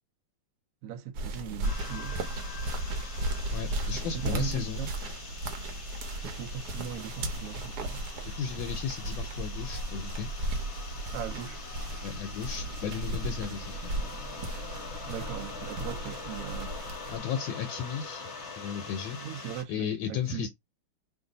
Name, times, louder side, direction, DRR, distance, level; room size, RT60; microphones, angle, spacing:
voice 1, 0.8-2.2 3.9-4.0 4.3-4.9 6.2-8.1 11.1-11.6 15.0-16.8 19.2-20.5, right 9 dB, 85° right, 0.7 m, -39 dB
sound 1, 1.1-17.2, right 1 dB, 65° right, 1.1 m, -35 dB
sound 2, 1.6-19.6, left 4 dB, 45° left, 1.1 m, -43 dB
voice 2, 3.5-4.9 8.3-10.3 12.0-13.9 17.1-18.3 18.6-19.2 19.7-20.5, left 8 dB, 80° left, 1.3 m, -35 dB
3.1 x 2.6 x 3.8 m
omnidirectional pair, 2.2 m